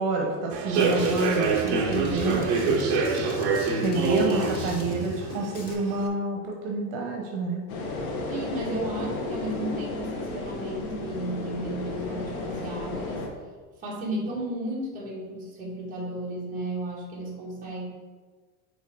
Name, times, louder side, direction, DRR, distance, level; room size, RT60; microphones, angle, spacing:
voice 1, 0.0-2.8 3.8-7.6, right 2 dB, 60° right, 1 dB, 1.1 m, -28 dB
Human voice / Subway metro underground, 0.5-6.1, right 4 dB, 40° right, 0.8 m, -26 dB
Drum kit, 0.7-5.7, left 3 dB, 20° left, 0.4 m, -36 dB
sound 1, 7.7-13.3, left 2 dB, 75° left, 1.4 m, -33 dB
voice 2, 8.3-13.2 13.8-17.9, right 1 dB, 20° right, -6 dB, 1.6 m, -34 dB
5.6 x 3.9 x 4.7 m, 1.4 s
supercardioid pair, 175°, 44 cm